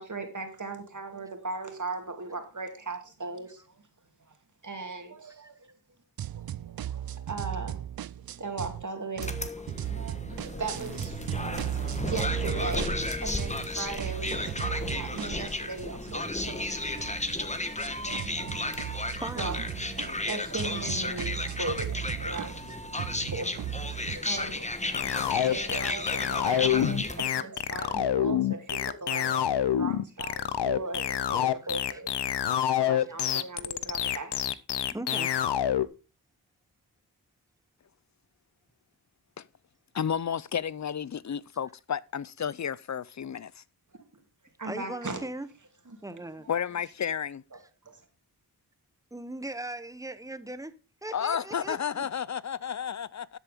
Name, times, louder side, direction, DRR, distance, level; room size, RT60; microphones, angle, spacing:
voice 1, 0.0-3.8 4.3-4.4 4.6-5.5 6.7-7.8 8.3-9.3 9.8-17.5 18.1-22.6 22.9-23.0 23.3-24.9 25.2-32.1 32.7-34.4 44.6-45.2 45.9-46.0 46.4-46.5 47.8-48.0, right 3 dB, 50° right, 2.7 m, -38 dB
sound 1, 6.2-8.8 9.1-13.7 14.0-24.2, right 11 dB, 65° right, 0.5 m, -36 dB
sound 2, 9.2-27.2, left 2 dB, 15° left, 1.3 m, -34 dB
voice 2, 19.2-19.6 26.6-26.7 30.9-31.0 34.9-35.3 44.6-45.5 46.0-46.5 49.1-50.7 51.0-52.0, right 1 dB, 10° right, 1.0 m, -38 dB
sound 3, 24.9-35.9, left 10 dB, 85° left, 0.7 m, -27 dB
voice 3, 39.9-43.6 46.5-47.4 51.1-53.4, left 8 dB, 45° left, 0.5 m, -32 dB
13.0 x 8.2 x 3.6 m
cardioid pair, 60°, 40 cm